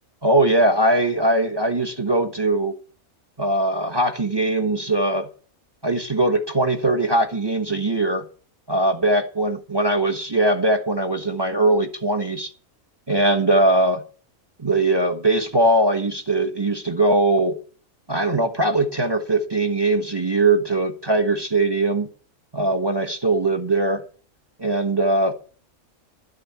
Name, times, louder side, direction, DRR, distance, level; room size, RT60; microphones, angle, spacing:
voice 1, 0.2-2.7 3.4-5.3 5.8-8.2 8.7-12.5 13.1-14.0 14.6-17.6 18.1-22.1 22.5-24.0 24.6-25.3, right 2 dB, 20° right, 1.1 m, -20 dB
12.0 x 6.4 x 8.7 m
omnidirectional pair, 1.5 m